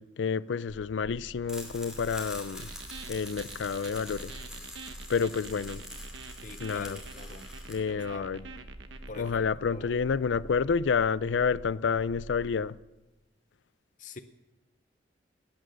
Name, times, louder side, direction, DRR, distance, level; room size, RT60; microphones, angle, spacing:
voice 1, 0.0-2.7 3.1-4.3 5.1-5.8 6.6-7.0 7.7-8.4 9.2-12.8, left 5 dB, 80° left, 0.4 m, -29 dB
sound 1, 0.7-12.6, right 1 dB, 55° right, 1.2 m, -48 dB
sound 2, 1.5-7.7, left 1 dB, 5° right, 2.6 m, -45 dB
sound 3, 2.6-9.3, right 5 dB, 85° right, 0.9 m, -47 dB
voice 2, 6.4-7.5 7.9-8.3 9.1-9.9 14.0-14.2, left 3 dB, 45° left, 0.7 m, -45 dB
18.5 x 9.0 x 6.3 m
head